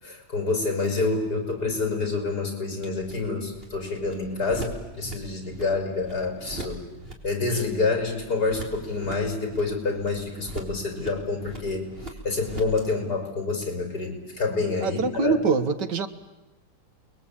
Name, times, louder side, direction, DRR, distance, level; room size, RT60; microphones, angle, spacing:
voice 1, 0.0-6.8 7.2-11.9 12.2-15.3, left 3 dB, 65° left, 4 dB, 6.2 m, -27 dB
sound 1, 0.8-12.9, right 2 dB, 35° right, 3.8 m, -42 dB
voice 2, 14.8-16.1, right 4 dB, 90° right, 9 dB, 2.1 m, -24 dB
29.5 x 22.0 x 8.8 m, 1.0 s
omnidirectional pair, 1.8 m